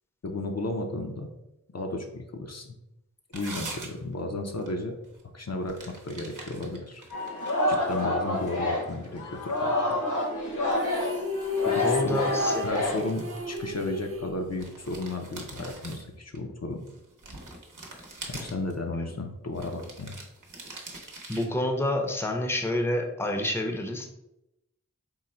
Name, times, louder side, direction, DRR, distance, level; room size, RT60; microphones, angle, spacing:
voice 1, 0.2-1.3 1.7-2.7 3.3-5.0 5.3-5.8 6.0-7.0 7.7-9.7 11.7-12.2 12.6-16.8 18.3-20.2, left 2 dB, 55° left, 3 dB, 0.5 m, -33 dB
sound 1, 3.3-4.2 4.5-4.7 5.0-5.2 5.7-7.9 8.4-9.4 12.1-12.3 12.6-14.2 14.5-16.4 16.9-18.7 19.5-21.5, right 2 dB, 75° right, 0.8 m, -43 dB
Singing, 7.1-13.5, left 1 dB, 70° left, 1.0 m, -29 dB
sound 2, 10.7-15.0, left 3 dB, 45° right, 0.4 m, -32 dB
voice 2, 11.8-12.7 21.3-24.1, left 1 dB, 10° left, 2 dB, 0.6 m, -28 dB
3.8 x 2.1 x 4.2 m, 0.86 s
wide cardioid pair, 40°, 32 cm